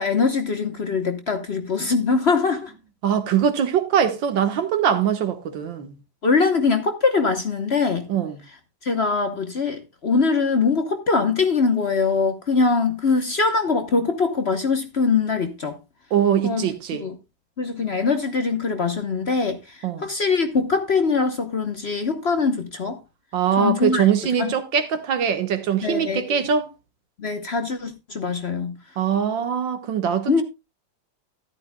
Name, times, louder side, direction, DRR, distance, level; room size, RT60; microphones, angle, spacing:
voice 1, 0.0-2.7 6.2-8.1 8.8-15.8 16.4-16.7 17.0-17.2 17.6-23.0 23.6-24.0 24.4-24.5 25.8-26.4 27.2-28.8 30.3-30.4, left 4 dB, 45° left, 1.0 m, -22 dB
voice 2, 3.0-6.0 8.1-8.4 16.1-17.0 19.8-20.1 23.3-26.7 29.0-30.4, right 8 dB, 80° right, 2.0 m, -22 dB
13.0 x 11.5 x 2.2 m
omnidirectional pair, 2.0 m